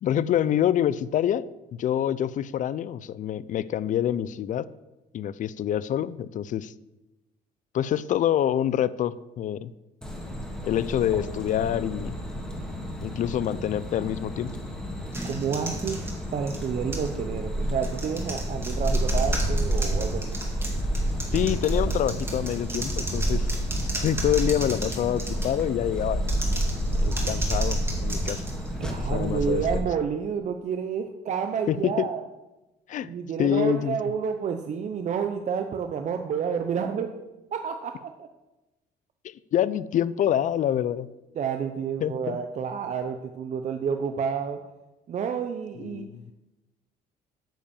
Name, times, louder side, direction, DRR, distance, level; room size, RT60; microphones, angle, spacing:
voice 1, 0.0-4.7 5.1-6.7 7.7-9.7 10.6-12.1 13.0-14.5 21.3-23.5 24.0-26.2 27.0-28.4 29.1-29.6 31.7-32.1 32.9-33.1 33.4-34.0 39.5-41.1 42.0-42.4 45.8-46.3, left 10 dB, 50° left, 18 dB, 0.4 m, -26 dB
sound 1, 10.0-29.8, right 1 dB, 5° left, 1.9 m, -30 dB
sound 2, 15.1-17.2 17.8-25.7 26.2-29.1, right 1 dB, 15° right, 2.1 m, -35 dB
voice 2, 15.3-20.2 28.8-32.2 33.0-37.1 37.5-38.3 41.4-44.6 45.1-46.1, right 6 dB, 45° right, 6 dB, 0.7 m, -29 dB
8.9 x 5.2 x 7.0 m, 1.0 s
cardioid pair, 110°, 17 cm